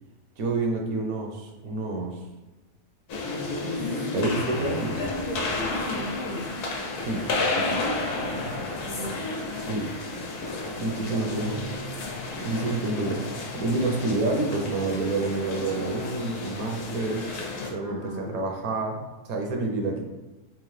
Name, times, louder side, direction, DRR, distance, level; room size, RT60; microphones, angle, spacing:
voice 1, 0.4-2.2 3.7-5.1 7.0-7.2 7.5-8.6 9.6-9.9 10.8-11.6 12.4-13.3 13.5-17.3 17.7-20.0, right 2 dB, 70° right, 2 dB, 1.1 m, -29 dB
sound 1, 3.1-17.7, left 2 dB, 90° left, 1.3 m, -31 dB
voice 2, 5.5-6.5 8.9-9.2 17.8-18.4, left 1 dB, 65° left, -5 dB, 0.6 m, -36 dB
3.6 x 2.9 x 3.1 m, 1.1 s
omnidirectional pair, 1.6 m